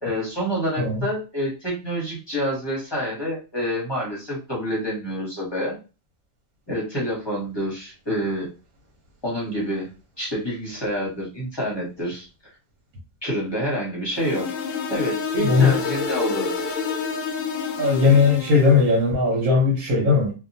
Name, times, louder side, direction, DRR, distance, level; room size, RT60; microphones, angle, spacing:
voice 1, 0.0-5.8 6.7-8.5 9.2-9.9 10.2-12.3 13.2-14.5 14.9-16.5, equal, 20° left, 0.9 m, -27 dB
sound 1, 14.1-18.9, left 5 dB, 70° left, 0.8 m, -28 dB
voice 2, 15.4-15.7 17.8-20.3, left 4 dB, 75° right, 1.3 m, -18 dB
2.8 x 2.2 x 2.6 m
omnidirectional pair, 1.5 m